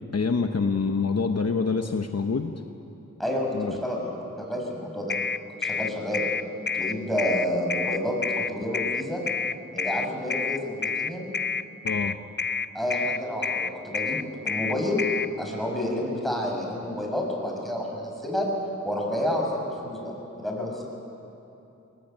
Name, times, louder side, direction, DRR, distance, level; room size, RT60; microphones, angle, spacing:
voice 1, 0.1-2.5 3.5-3.8 11.8-12.2, left 4 dB, 55° left, 6 dB, 1.0 m, -26 dB
voice 2, 3.2-5.2 5.6-6.3 6.7-8.2 8.5-9.2 9.7-11.3 12.7-15.0 15.4-18.5 18.8-20.8, left 1 dB, ahead, -1 dB, 7.0 m, -29 dB
sound 1, 5.1-15.3, left 5 dB, 35° left, 0.6 m, -28 dB
21.5 x 20.5 x 9.1 m, 3.0 s
wide cardioid pair, 55°, 30 cm